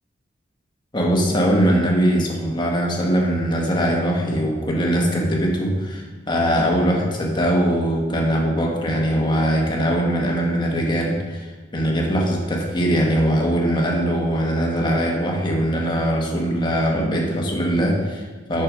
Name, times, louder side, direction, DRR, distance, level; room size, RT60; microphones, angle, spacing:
voice 1, 0.9-18.6, equal, 25° left, 0 dB, 1.3 m, -21 dB
6.5 x 5.8 x 5.1 m, 1.4 s
head